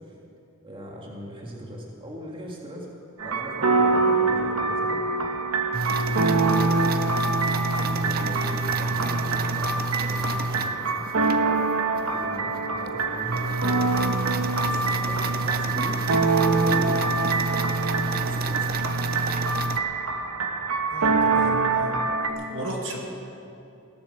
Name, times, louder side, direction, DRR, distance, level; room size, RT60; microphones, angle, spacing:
voice 1, 0.6-2.9 3.2-5.0 6.0-6.6 7.8-11.1 12.1-12.5 12.8-13.4 14.6-16.0 16.4-17.0 18.1-18.7, equal, 25° right, -2 dB, 1.8 m, -39 dB
sound 1, 3.2-22.3, right 3 dB, 90° right, 1.2 m, -25 dB
sound 2, 5.7-11.4 12.0-12.1 12.5-12.6 12.9-19.8, right 2 dB, 45° right, 0.6 m, -29 dB
voice 2, 20.9-22.0 22.5-23.0, right 1 dB, 60° right, 0 dB, 2.1 m, -34 dB
16.5 x 11.0 x 6.8 m, 2.7 s
head